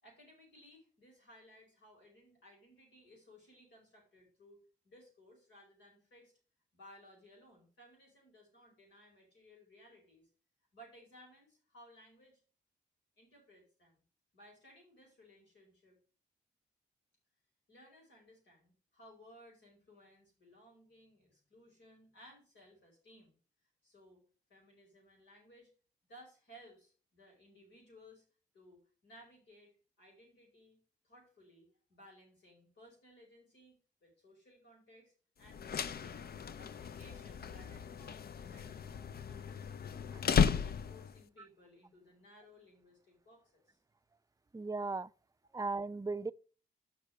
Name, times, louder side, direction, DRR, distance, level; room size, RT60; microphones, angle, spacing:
voice 1, 0.0-4.6 4.8-6.3 6.7-10.3 10.7-12.4 13.2-14.0 14.3-16.0 17.7-23.3 23.8-24.2 24.5-25.7 26.1-28.2 28.5-43.8, equal, 80° left, 5.0 m, -60 dB
sound 1, 35.5-41.2, left 7 dB, 60° left, 0.6 m, -35 dB
voice 2, 44.5-45.1 45.5-46.3, right 3 dB, 20° right, 0.5 m, -36 dB
6.5 x 5.6 x 6.5 m
supercardioid pair, 45°, 18 cm